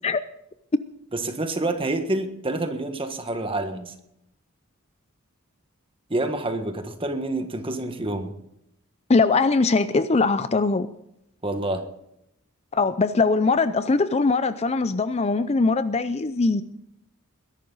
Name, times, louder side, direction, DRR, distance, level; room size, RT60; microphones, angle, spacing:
voice 1, 1.1-3.9 6.1-8.3 11.4-11.8, right 2 dB, 25° right, 7 dB, 1.6 m, -28 dB
voice 2, 9.1-10.9 12.7-16.6, left 3 dB, 30° left, 13 dB, 0.5 m, -21 dB
21.0 x 11.5 x 4.0 m, 0.79 s
head